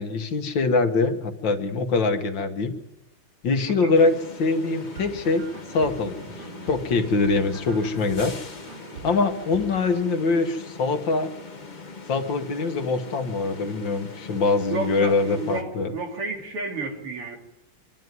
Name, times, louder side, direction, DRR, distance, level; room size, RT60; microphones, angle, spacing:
voice 1, 0.0-2.7 3.4-5.4 5.7-6.2 6.7-8.4 9.0-11.3 12.1-15.9, left 3 dB, 60° left, 7 dB, 2.0 m, -23 dB
sound 1, 3.9-15.6, left 3 dB, 30° left, 0.9 m, -41 dB
sound 2, 4.7-10.0, right 5 dB, 75° right, 3.5 m, -43 dB
voice 2, 14.7-17.4, right 3 dB, 90° right, 2 dB, 3.8 m, -32 dB
25.0 x 12.5 x 9.4 m, 0.94 s
omnidirectional pair, 2.4 m